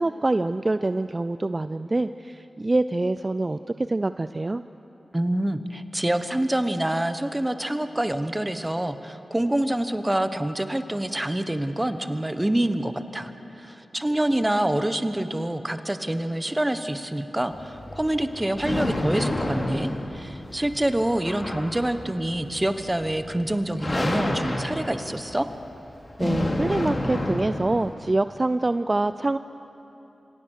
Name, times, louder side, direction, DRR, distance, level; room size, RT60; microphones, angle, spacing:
voice 1, 0.0-4.6 26.2-29.4, right 2 dB, 35° right, 12 dB, 0.4 m, -25 dB
voice 2, 5.1-25.5, right 1 dB, 20° right, 10 dB, 1.1 m, -26 dB
sound 1, 17.5-27.9, left 1 dB, 45° left, 2.6 m, -30 dB
26.0 x 17.0 x 6.5 m, 3.0 s
cardioid pair, 45°, 0 cm